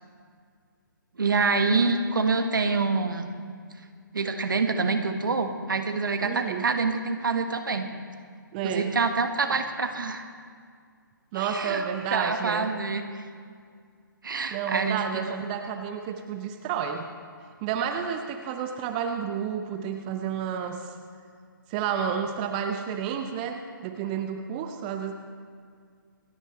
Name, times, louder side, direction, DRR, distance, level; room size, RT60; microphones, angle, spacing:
voice 1, 1.2-3.3 4.1-7.9 8.6-10.3 11.3-11.8 12.1-13.0 14.2-15.0, right 4 dB, 65° right, 7 dB, 1.4 m, -26 dB
voice 2, 6.2-6.7 8.5-9.0 11.3-12.7 14.5-17.0 17.6-20.9 21.7-25.1, right 7 dB, 25° right, 5 dB, 0.7 m, -30 dB
27.0 x 10.0 x 3.2 m, 2.1 s
figure-of-eight pair, 135°, 12 cm